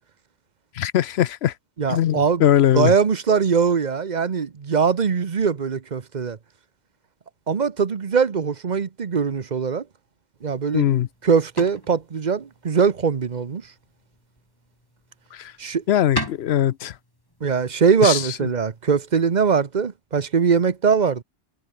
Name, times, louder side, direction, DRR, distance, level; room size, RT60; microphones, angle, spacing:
voice 1, 0.7-1.5 1.9-2.9 10.7-11.1 15.3-15.5 15.9-16.9 18.0-18.2, left 11 dB, 65° left, 0.8 m, -20 dB
voice 2, 1.8-2.4 2.7-6.4 7.5-9.8 10.4-10.9 11.2-13.6 15.6-15.8 17.4-21.2, right 6 dB, 40° right, 1.0 m, -21 dB
sound 1, 10.4-19.5, equal, 15° left, 7.3 m, -40 dB
omnidirectional pair, 1.3 m